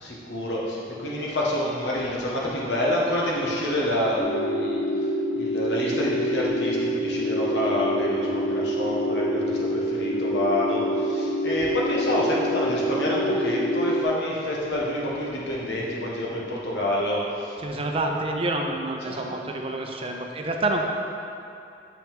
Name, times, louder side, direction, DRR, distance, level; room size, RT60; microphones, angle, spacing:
voice 1, 0.0-4.8 5.3-17.6 19.0-19.3, left 1 dB, 80° left, -4 dB, 1.4 m, -27 dB
sound 1, 4.2-14.0, equal, 40° left, 0.7 m, -26 dB
voice 2, 17.6-20.8, right 2 dB, 35° right, 2 dB, 0.6 m, -28 dB
7.0 x 6.0 x 3.6 m, 2.7 s
head